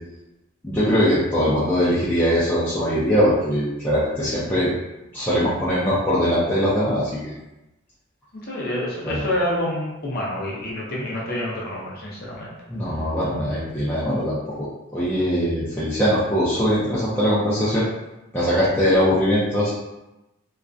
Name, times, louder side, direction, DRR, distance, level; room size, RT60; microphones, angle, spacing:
voice 1, 0.6-4.7 5.1-7.3 9.0-9.2 12.7-17.8 18.3-19.7, equal, 10° left, -11 dB, 0.4 m, -21 dB
voice 2, 8.3-12.5, left 1 dB, 50° left, -5 dB, 0.6 m, -27 dB
2.3 x 2.1 x 2.5 m, 0.97 s
head